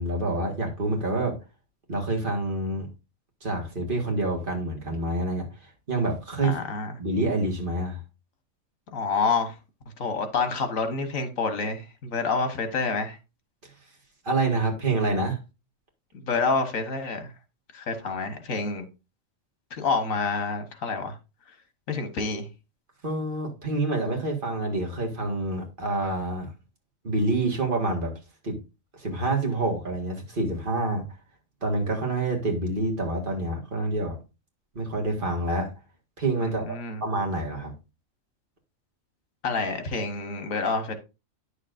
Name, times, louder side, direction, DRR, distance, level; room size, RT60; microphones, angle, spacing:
voice 1, 0.0-1.4 1.9-2.9 3.4-5.5 5.9-6.6 7.0-8.0 14.3-15.4 23.0-26.5 27.0-28.1 28.4-28.6 29.0-31.1 31.6-34.2 34.8-35.7 36.2-37.7, right 2 dB, 40° right, 1.9 m, -27 dB
voice 2, 6.4-6.9 8.9-9.6 10.0-13.2 16.1-17.3 17.7-18.8 19.7-21.2 21.9-22.5 36.4-37.0 39.4-40.9, left 4 dB, 85° left, 1.6 m, -28 dB
9.7 x 6.6 x 2.5 m
omnidirectional pair, 1.4 m